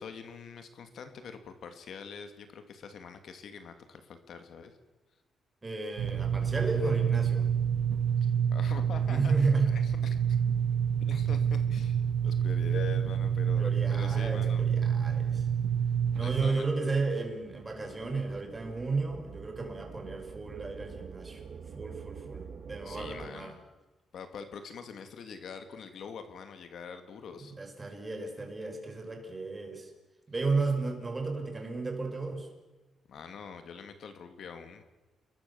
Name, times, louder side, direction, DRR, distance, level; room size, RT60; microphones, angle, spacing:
voice 1, 0.0-4.7 8.2-10.2 11.1-14.6 16.2-16.6 22.8-23.6 24.1-27.5 33.1-34.8, left 6 dB, 60° left, 8 dB, 2.7 m, -44 dB
voice 2, 5.6-7.5 9.0-9.7 13.6-15.5 16.1-21.4 21.7-23.5 27.6-29.9 30.3-32.5, right 3 dB, 20° right, 3 dB, 6.1 m, -33 dB
sound 1, 6.0-16.5, right 8 dB, 80° right, 1.0 m, -28 dB
sound 2, 16.5-23.3, right 6 dB, 50° right, 2.1 m, -46 dB
29.5 x 22.0 x 7.3 m, 1.1 s
cardioid pair, 120°, 0 cm